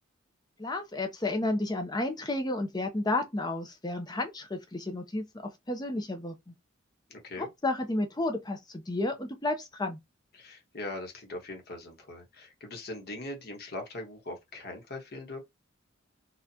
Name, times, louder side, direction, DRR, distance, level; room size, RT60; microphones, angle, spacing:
voice 1, 0.6-6.5 7.4-10.0, left 2 dB, 20° left, 0.6 m, -32 dB
voice 2, 7.1-7.5 10.3-15.4, left 2 dB, 50° left, 1.2 m, -41 dB
4.2 x 2.4 x 2.8 m
head